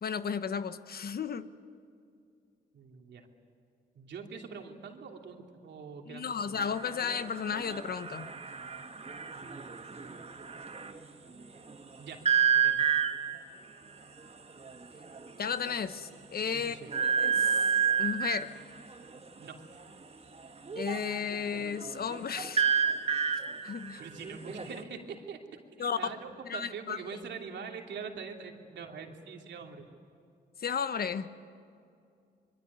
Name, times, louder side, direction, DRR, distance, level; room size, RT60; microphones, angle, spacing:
voice 1, 0.0-1.5 6.1-8.3 15.4-17.6 18.0-18.5 20.7-22.6 23.6-24.0 25.8-26.0 26.5-27.0 30.6-31.3, left 6 dB, 55° left, 11 dB, 1.2 m, -34 dB
voice 2, 2.7-3.3 3.9-6.6 9.4-10.3 12.0-12.2 12.5-13.0 16.5-16.9 19.4-19.6 24.0-29.9, right 5 dB, 75° right, 3 dB, 2.9 m, -44 dB
sound 1, 6.6-11.0 12.2-13.5 14.7-14.8 15.0-15.3 15.7-15.8 16.9-18.5 20.7-24.8, right 7 dB, 35° right, 1.7 m, -30 dB
25.0 x 23.0 x 9.5 m, 2.4 s
cardioid pair, 65°, 18 cm